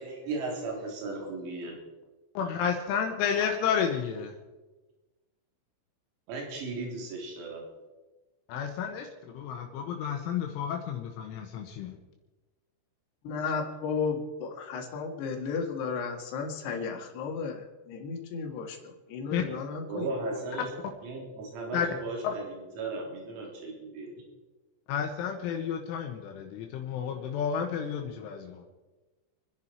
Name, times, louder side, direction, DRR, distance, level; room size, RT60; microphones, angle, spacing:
voice 1, 0.0-1.7 6.3-7.6 19.9-20.7 21.0-24.1, right 3 dB, 90° right, -1 dB, 6.0 m, -36 dB
voice 2, 2.4-4.4 8.5-9.1 9.4-11.9 19.3-19.4 21.7-21.9 22.2-22.3 24.9-28.6, left 7 dB, 75° left, 3 dB, 3.5 m, -31 dB
voice 3, 13.3-17.6 17.9-20.1, left 5 dB, 60° left, 3 dB, 3.5 m, -34 dB
28.5 x 10.5 x 4.4 m, 1.2 s
omnidirectional pair, 6.0 m